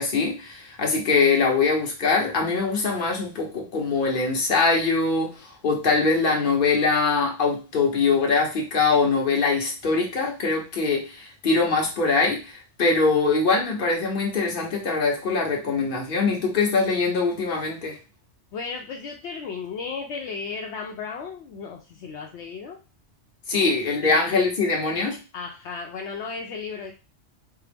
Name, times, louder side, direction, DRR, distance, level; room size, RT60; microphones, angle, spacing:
voice 1, 0.0-18.0 23.5-25.2, left 4 dB, 50° left, 0 dB, 1.1 m, -23 dB
voice 2, 18.5-22.8 23.5-23.7 24.0-24.3 25.3-26.9, left 5 dB, 75° left, 1 dB, 0.8 m, -35 dB
4.5 x 2.0 x 3.3 m, 0.31 s
omnidirectional pair, 1.2 m